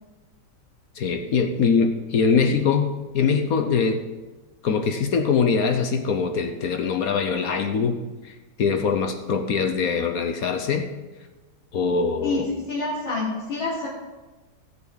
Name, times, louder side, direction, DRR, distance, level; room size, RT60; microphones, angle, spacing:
voice 1, 1.0-4.0 4.6-8.0 8.2-10.9 11.7-12.5, left 5 dB, 55° left, 6 dB, 1.1 m, -23 dB
voice 2, 12.7-13.9, left 3 dB, 90° left, -12 dB, 5.4 m, -27 dB
21.5 x 8.0 x 4.0 m, 1.2 s
omnidirectional pair, 2.2 m